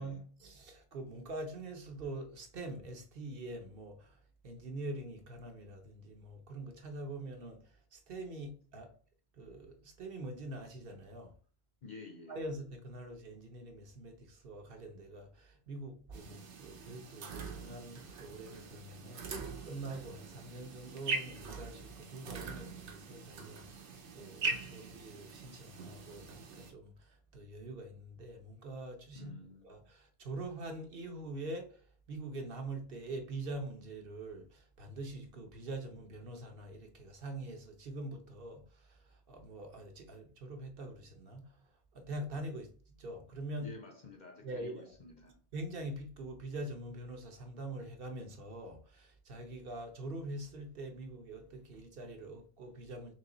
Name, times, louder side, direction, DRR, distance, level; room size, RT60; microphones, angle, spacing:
voice 1, 0.0-8.9 9.3-11.3 12.3-29.3 29.6-43.7 44.4-44.9 45.5-53.1, right 2 dB, 55° right, 0.9 m, -44 dB
voice 2, 11.8-12.5 29.1-29.8 43.6-45.4, left 2 dB, 55° left, 0.5 m, -51 dB
sound 1, 16.1-26.7, right 4 dB, 80° right, 1.1 m, -42 dB
3.6 x 2.9 x 3.7 m
omnidirectional pair, 1.2 m